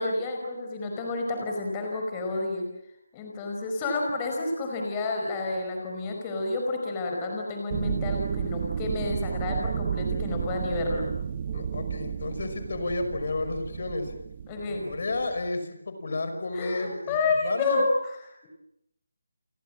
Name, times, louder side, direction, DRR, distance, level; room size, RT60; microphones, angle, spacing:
voice 1, 0.0-2.7 3.1-11.1 14.5-14.9 16.5-18.5, left 3 dB, 15° left, 1 dB, 5.1 m, -30 dB
sound 1, 7.7-15.5, right 7 dB, 25° right, 1.1 m, -32 dB
voice 2, 11.5-14.1 14.7-17.8, left 2 dB, 50° left, 8 dB, 5.6 m, -31 dB
29.5 x 25.0 x 7.6 m, 0.79 s
figure-of-eight pair, 175°, 0 cm